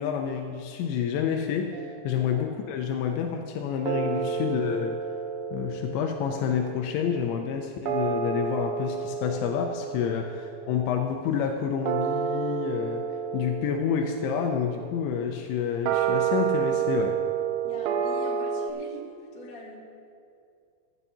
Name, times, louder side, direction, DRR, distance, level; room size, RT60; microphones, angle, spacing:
voice 1, 0.0-5.0 5.5-10.2 10.7-13.1 13.3-17.2, left 8 dB, 85° left, 3 dB, 2.9 m, -28 dB
sound 1, 1.7-3.1 3.9-18.7, right 8 dB, 80° right, 2.6 m, -31 dB
voice 2, 17.6-19.8, left 2 dB, 50° left, -5 dB, 3.4 m, -44 dB
16.0 x 12.5 x 2.8 m, 2.4 s
omnidirectional pair, 5.1 m